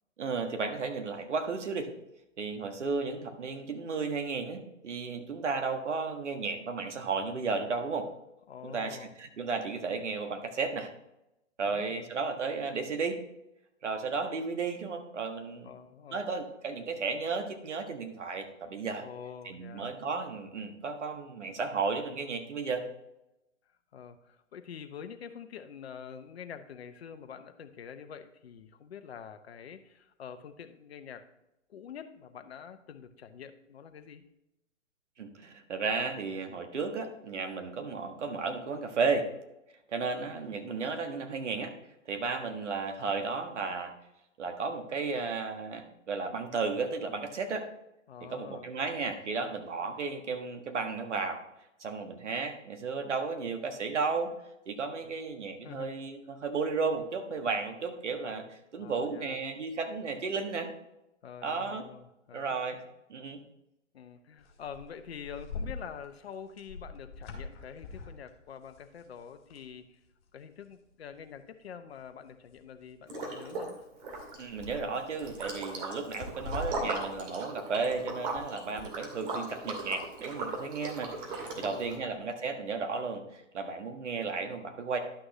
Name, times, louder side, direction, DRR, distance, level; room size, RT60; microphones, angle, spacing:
voice 1, 0.2-1.9 2.4-8.1 8.6-10.9 11.6-13.2 13.8-15.7 16.1-19.0 19.4-22.9 35.2-39.3 39.9-41.7 42.0-43.9 44.4-47.7 48.2-51.4 51.8-54.3 54.7-58.4 58.7-60.7 61.4-61.8 62.3-62.8 63.1-63.4 74.4-85.0, right 4 dB, 65° right, 5 dB, 1.5 m, -34 dB
voice 2, 8.5-9.1 11.6-12.0 15.6-16.3 19.0-19.9 23.9-31.3 31.7-34.2 48.1-48.7 55.6-55.9 58.8-59.4 61.2-62.6 63.9-70.0 70.3-73.8 81.4-82.1, left 7 dB, 55° left, 9 dB, 0.9 m, -46 dB
sound 1, 64.4-69.7 70.1-70.2 70.6-71.4 71.9-78.4 78.7-82.2, left 3 dB, 35° left, 2.4 m, -45 dB
Liquid, 73.1-73.7 74.0-82.0, right 3 dB, 45° right, 2.4 m, -38 dB
11.5 x 6.2 x 3.1 m, 0.88 s
figure-of-eight pair, 125°, 38 cm